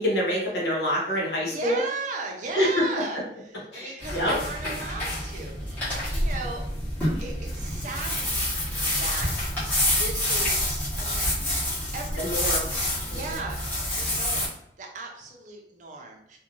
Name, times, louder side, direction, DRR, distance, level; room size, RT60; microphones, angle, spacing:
voice 1, 0.0-1.8 2.5-2.7 3.7-4.4 12.2-12.7 13.1-13.2, equal, 70° left, -5 dB, 0.9 m, -26 dB
voice 2, 1.4-6.6 7.2-11.4 11.9-12.7 13.0-13.6 13.9-16.4, right 3 dB, 45° right, 1 dB, 0.5 m, -37 dB
sound 1, 4.0-14.5, left 1 dB, 10° left, 1.1 m, -28 dB
2.6 x 2.2 x 2.9 m, 0.73 s
head